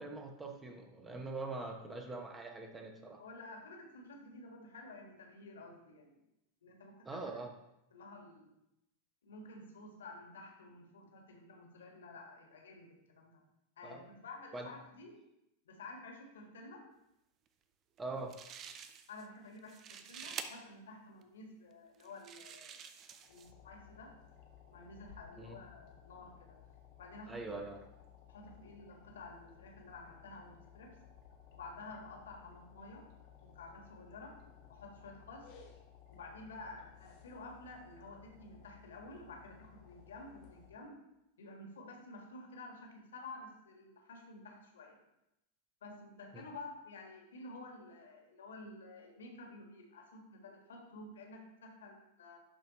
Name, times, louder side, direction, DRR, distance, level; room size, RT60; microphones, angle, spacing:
voice 1, 0.0-3.2 7.0-7.5 13.8-14.0 14.5-14.7 18.0-18.3 25.4-25.6 27.3-27.8, right 3 dB, 15° right, 3 dB, 1.0 m, -43 dB
voice 2, 3.2-6.2 6.6-7.4 7.9-8.5 9.2-13.4 13.8-15.2 15.6-16.8 19.1-22.9 23.3-24.1 24.7-26.6 27.0-27.4 28.3-31.0 31.5-33.1 33.4-34.3 34.7-35.5 36.1-41.0 41.4-45.0 45.8-52.4, left 2 dB, 65° left, 1 dB, 1.6 m, -51 dB
sound 1, 18.0-18.1 18.3-19.3 19.6-20.5 21.2-21.3 22.0-23.5, right 8 dB, 30° right, 0.6 m, -47 dB
sound 2, 23.2-40.7, left 9 dB, 45° left, 1.1 m, -59 dB
11.5 x 4.4 x 3.0 m, 0.86 s
figure-of-eight pair, 90°, 0 cm